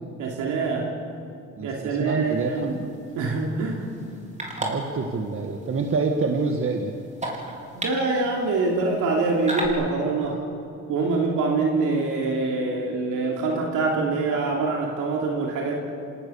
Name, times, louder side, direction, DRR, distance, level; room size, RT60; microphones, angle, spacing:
voice 1, 0.2-0.9 1.6-2.8 3.1-3.9 7.7-10.4 10.9-15.8, right 3 dB, 85° right, -1 dB, 3.0 m, -25 dB
voice 2, 1.6-2.9 4.6-7.0, right 4 dB, 45° right, 3 dB, 1.7 m, -27 dB
sound 1, 2.2-9.7, right 1 dB, 25° right, 4.5 m, -37 dB
28.0 x 18.0 x 7.1 m, 2.6 s
cardioid pair, 90°, 30 cm